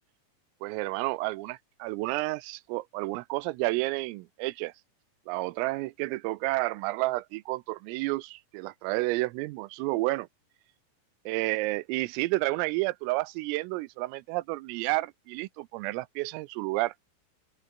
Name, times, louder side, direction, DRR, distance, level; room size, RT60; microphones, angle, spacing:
voice 1, 0.6-4.7 5.3-10.3 11.3-16.9, right 21 dB, 85° right, 3.4 m, -30 dB
open air
omnidirectional pair, 5.9 m